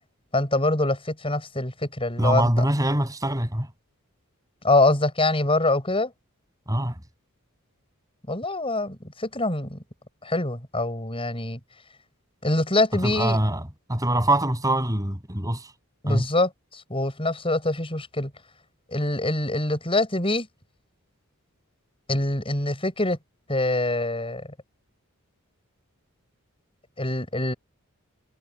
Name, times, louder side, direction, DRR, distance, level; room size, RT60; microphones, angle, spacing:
voice 1, 0.3-2.7 4.6-6.1 8.3-9.8 10.2-11.6 12.4-13.4 16.0-18.3 18.9-20.5 22.1-23.2 23.5-24.5 27.0-27.5, left 2 dB, 25° left, 7.6 m, -24 dB
voice 2, 2.2-3.7 6.7-6.9 13.0-13.6 13.9-15.7 16.1-16.2, right 1 dB, 15° right, 7.9 m, -23 dB
head